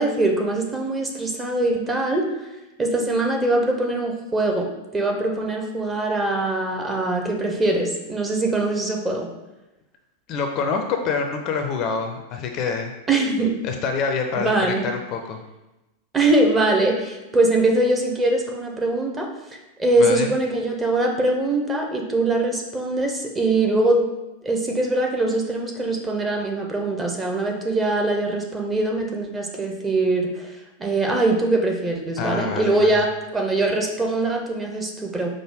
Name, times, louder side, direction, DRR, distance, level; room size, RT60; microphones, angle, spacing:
voice 1, 0.0-2.3 2.8-4.7 4.9-9.3 13.1-13.6 14.3-14.9 16.1-19.3 19.8-24.0 24.4-30.5 30.8-35.3, right 2 dB, 15° right, 1 dB, 0.8 m, -22 dB
voice 2, 10.3-12.9 13.6-15.4 20.0-20.3 32.2-32.9, left 5 dB, 35° left, 4 dB, 0.5 m, -26 dB
4.9 x 2.1 x 4.8 m, 1.0 s
figure-of-eight pair, 90°, 0 cm